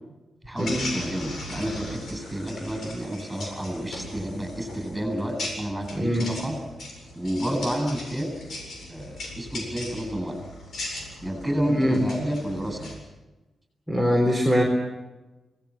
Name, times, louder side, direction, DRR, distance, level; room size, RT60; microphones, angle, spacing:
voice 1, 0.4-6.6 7.1-8.3 8.9-10.4 11.2-12.9, equal, 5° right, 4 dB, 8.0 m, -30 dB
sound 1, 0.6-12.9, left 1 dB, 70° left, 7.6 m, -38 dB
voice 2, 5.9-6.3 11.7-12.0 13.9-14.6, equal, 10° left, 0 dB, 4.1 m, -22 dB
27.5 x 18.5 x 7.3 m, 1.1 s
wide cardioid pair, 130°, 0 cm